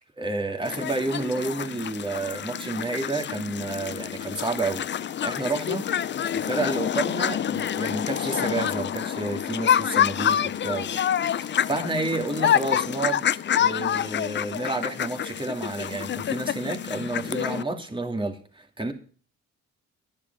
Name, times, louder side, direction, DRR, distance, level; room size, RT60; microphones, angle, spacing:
voice 1, 0.2-5.9 6.3-18.9, right 2 dB, 15° right, 2.7 m, -30 dB
sound 1, 0.7-17.6, left 9 dB, 40° left, 0.5 m, -27 dB
11.0 x 11.0 x 5.5 m
cardioid pair, 90°, 30 cm